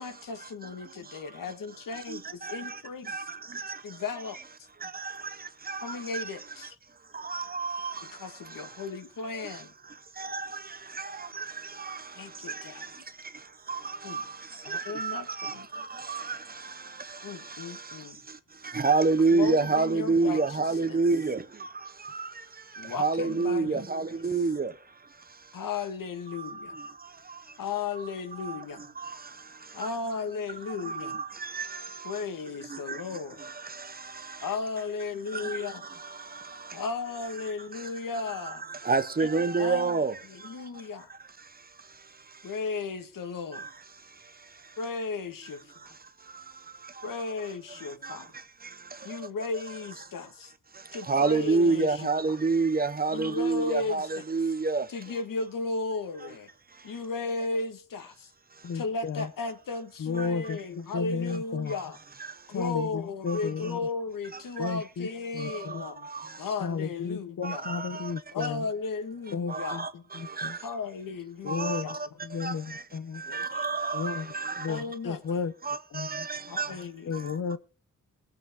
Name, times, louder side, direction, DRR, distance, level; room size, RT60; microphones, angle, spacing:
voice 1, 0.0-3.3 3.8-4.7 5.8-6.8 8.1-9.7 12.1-13.0 14.0-14.2 14.6-15.7 17.2-18.2 19.3-21.0 22.8-24.2 25.5-26.8 27.6-28.8 29.7-31.2 32.0-33.4 34.4-35.8 36.7-38.6 39.2-39.3 39.6-40.0 40.3-41.1 42.4-43.7 44.8-45.9 47.0-48.3 49.0-50.5 50.9-52.4 53.1-54.2 54.9-56.5 56.8-58.3 58.7-62.0 62.5-66.1 66.4-67.7 68.3-70.0 70.6-72.0 73.2-73.6 74.7-75.4 76.5-77.3, left 4 dB, 90° left, 1.6 m, -35 dB
voice 2, 7.3-7.9 10.3-10.5 11.4-11.5 11.9-12.0 13.7-13.8 14.1-14.2 14.7-15.8 16.1-16.2 18.7-21.4 22.2-22.3 23.0-24.7 28.5-28.6 30.9-31.2 31.5-31.7 38.9-40.1 51.1-54.8 67.4-68.0 69.5-69.9 70.4-70.5 71.5-71.8 72.4-72.5 73.3-74.7 75.7-76.7, right 4 dB, 30° right, 0.7 m, -27 dB
voice 3, 58.6-59.3 60.0-61.7 62.5-63.8 64.6-65.1 65.3-65.9 66.6-68.6 69.3-69.8 70.1-70.6 71.4-72.0 72.2-73.2 73.9-74.3 74.6-75.5 75.9-76.3 77.1-77.6, left 5 dB, 55° left, 0.6 m, -33 dB
22.0 x 7.7 x 3.6 m
wide cardioid pair, 175°, 32 cm